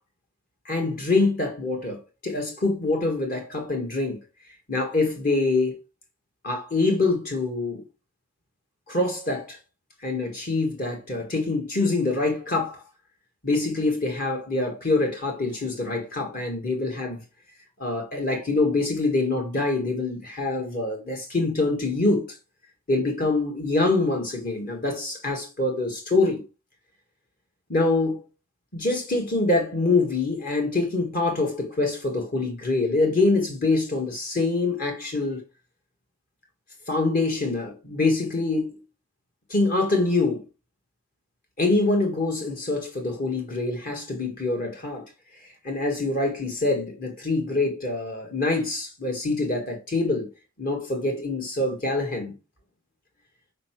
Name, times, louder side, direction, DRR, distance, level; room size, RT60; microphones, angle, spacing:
voice 1, 0.6-4.2 4.7-5.8 6.4-7.8 8.9-9.6 10.0-12.8 13.4-17.2 17.8-22.3 22.9-26.4 27.7-28.2 28.7-35.4 36.9-38.8 39.5-40.4 41.6-45.0 45.6-50.3 50.6-52.3, left 2 dB, 45° left, 1.7 m, -25 dB
6.8 x 4.5 x 4.7 m
head